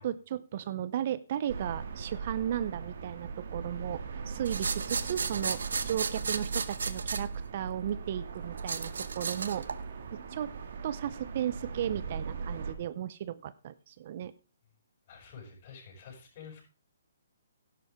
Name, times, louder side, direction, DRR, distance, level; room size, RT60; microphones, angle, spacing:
voice 1, 0.0-9.7 10.1-10.5 10.8-14.3, right 10 dB, 45° right, 17 dB, 0.6 m, -35 dB
sound 1, 1.5-12.7, right 5 dB, 65° right, 2.1 m, -39 dB
sound 2, 4.5-7.2 8.6-9.8, right 5 dB, 80° right, 0.9 m, -34 dB
voice 2, 15.1-16.6, left 6 dB, 40° left, 0 dB, 6.5 m, -49 dB
12.0 x 11.0 x 3.6 m, 0.33 s
hypercardioid pair, 150°, 0 cm